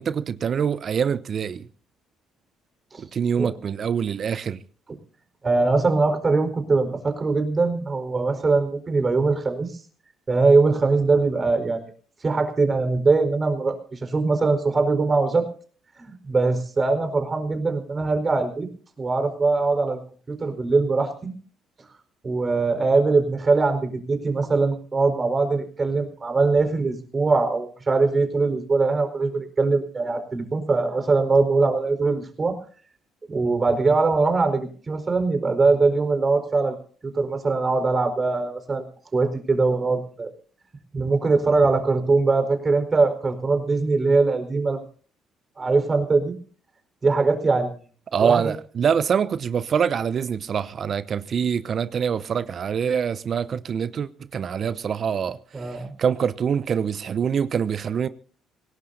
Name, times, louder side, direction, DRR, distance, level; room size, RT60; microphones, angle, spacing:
voice 1, 0.0-1.7 3.0-4.6 48.1-58.1, right 7 dB, 50° right, 0.8 m, -25 dB
voice 2, 5.4-9.7 10.3-11.8 12.2-15.5 16.1-18.7 19.0-20.0 20.3-21.3 22.2-32.6 33.3-36.8 37.0-38.8 39.1-40.3 40.9-44.8 45.6-46.4 47.0-47.7 48.2-48.4 55.5-55.9, right 3 dB, 30° right, 4.6 m, -22 dB
26.0 x 18.0 x 2.7 m
hypercardioid pair, 50°, 0 cm